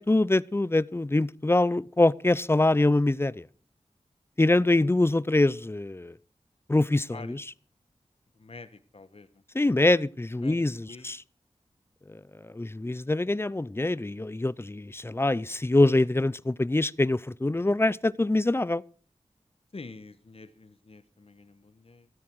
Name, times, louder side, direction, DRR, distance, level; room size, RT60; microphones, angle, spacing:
voice 1, 0.0-3.5 4.4-6.1 6.7-7.4 9.5-11.2 12.1-18.8, left 2 dB, 20° left, 0.6 m, -24 dB
voice 2, 7.1-7.4 8.3-9.4 10.4-11.1 13.0-13.2 19.7-22.1, left 3 dB, 55° left, 1.4 m, -47 dB
14.5 x 13.0 x 4.7 m
wide cardioid pair, 60°, 12 cm